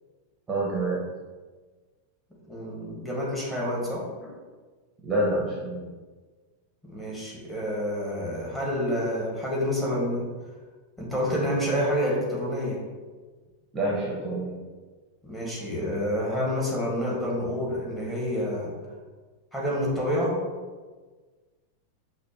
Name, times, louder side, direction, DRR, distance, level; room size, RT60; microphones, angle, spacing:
voice 1, 0.5-1.0 5.0-5.8 13.7-14.6, right 1 dB, 15° right, -5 dB, 0.9 m, -27 dB
voice 2, 2.5-4.0 6.8-10.2 11.0-12.8 15.2-18.7 19.5-20.4, equal, 5° left, -5 dB, 1.4 m, -28 dB
6.0 x 2.6 x 2.9 m, 1.4 s
figure-of-eight pair, 90°, 0 cm